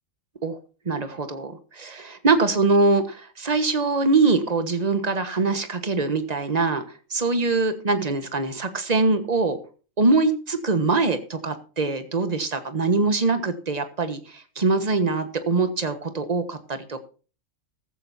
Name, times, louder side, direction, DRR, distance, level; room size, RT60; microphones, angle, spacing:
voice 1, 0.8-6.8 7.1-9.6 10.0-17.0, right 3 dB, 30° right, 9 dB, 1.5 m, -23 dB
15.0 x 14.5 x 2.8 m, 0.36 s
omnidirectional pair, 1.4 m